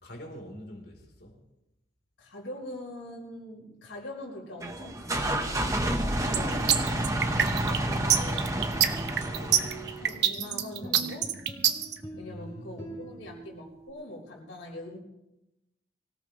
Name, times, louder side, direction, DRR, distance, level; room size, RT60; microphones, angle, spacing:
voice 1, 0.0-1.4 12.2-13.2, equal, 55° left, 4.1 m, -45 dB
voice 2, 2.2-8.7 9.1-11.4 12.2-15.0, left 1 dB, 80° left, 5.1 m, -43 dB
sound 1, 4.6-10.2, right 1 dB, 15° right, 1.3 m, -29 dB
sound 2, 6.3-11.9, right 9 dB, 60° right, 1.1 m, -25 dB
sound 3, 8.6-13.9, right 2 dB, 15° left, 4.9 m, -44 dB
24.5 x 17.5 x 3.3 m
head